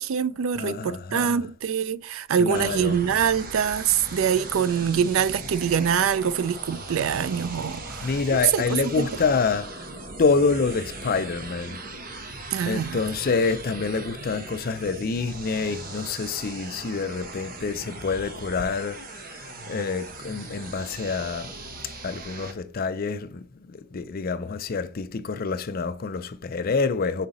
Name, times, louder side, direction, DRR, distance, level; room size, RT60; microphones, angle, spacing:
voice 1, 0.0-9.1 12.5-13.0, right 7 dB, 70° right, 0.4 m, -24 dB
voice 2, 0.6-1.4 2.4-3.0 8.0-9.8 10.2-11.8 12.7-21.6 22.0-27.3, left 4 dB, 45° left, 0.4 m, -27 dB
sound 1, 2.5-22.5, right 2 dB, 40° right, 1.0 m, -39 dB
5.4 x 4.8 x 3.8 m
head